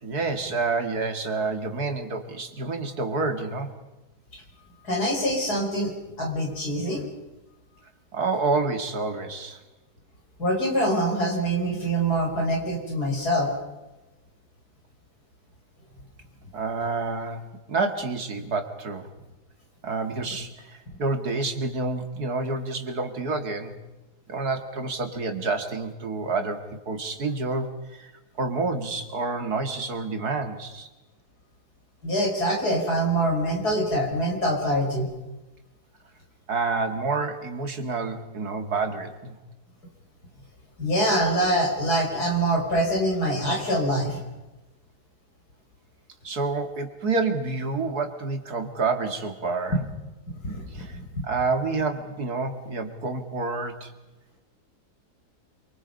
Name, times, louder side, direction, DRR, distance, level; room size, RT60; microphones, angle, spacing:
voice 1, 0.0-3.7 8.1-9.6 16.5-19.1 19.8-23.8 24.3-28.1 28.4-30.9 36.5-39.4 46.2-49.8 50.7-51.0 51.2-53.9, right 3 dB, 70° right, 7 dB, 2.7 m, -28 dB
voice 2, 4.8-5.9 6.2-7.1 10.4-13.5 32.0-35.1 40.8-44.2 49.7-49.8 50.4-51.2, right 1 dB, 75° left, 0 dB, 6.5 m, -24 dB
27.5 x 25.0 x 5.5 m, 1.1 s
omnidirectional pair, 1.7 m